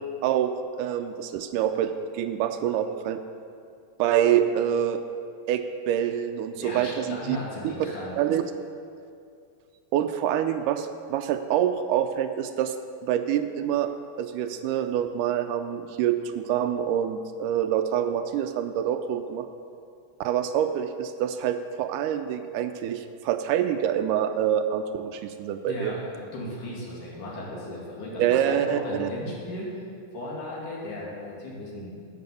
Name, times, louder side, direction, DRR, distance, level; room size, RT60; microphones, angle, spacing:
voice 1, 0.2-0.5 0.8-3.2 4.0-5.0 5.5-7.4 7.6-7.7 8.2-8.4 9.9-12.8 13.0-13.9 14.2-19.5 20.2-25.9 28.2-29.1, right 10 dB, 85° right, 8 dB, 2.1 m, -26 dB
voice 2, 6.5-8.2 25.6-29.9 30.1-32.0, left 1 dB, 75° left, -5 dB, 3.6 m, -36 dB
10.5 x 7.7 x 6.9 m, 2.4 s
omnidirectional pair, 3.6 m